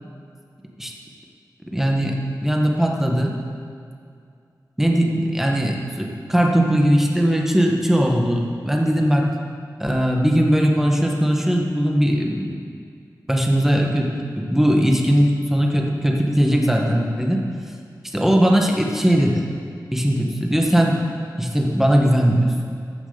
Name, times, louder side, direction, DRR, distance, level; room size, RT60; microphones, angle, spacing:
voice 1, 1.7-2.2 2.4-3.3 4.8-9.3 9.8-12.6 13.3-17.4 18.1-19.5 19.9-21.0 21.4-22.5, equal, 5° right, 0 dB, 1.4 m, -19 dB
14.0 x 7.1 x 4.0 m, 2.3 s
wide cardioid pair, 60°, 7 cm